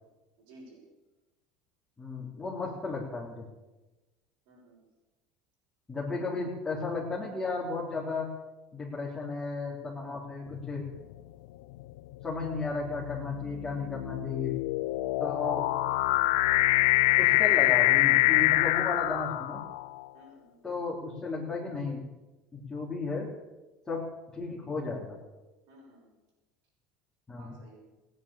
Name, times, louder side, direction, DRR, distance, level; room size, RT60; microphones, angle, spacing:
voice 1, 0.4-0.8 4.4-4.8 15.6-15.7 20.1-20.6 25.7-26.1 27.4-27.8, right 1 dB, 75° right, -2 dB, 6.8 m, -54 dB
voice 2, 2.0-3.5 5.9-8.3 8.7-10.9 12.2-14.6 15.2-15.7 17.2-19.6 20.6-22.1 22.5-23.3 23.9-25.2 27.3-27.6, left 3 dB, 15° left, -6 dB, 3.8 m, -34 dB
sound 1, 10.6-11.0 11.8-20.0, left 19 dB, 80° left, 0.5 m, -25 dB
17.0 x 9.9 x 8.6 m, 1.1 s
supercardioid pair, 120°, 3 cm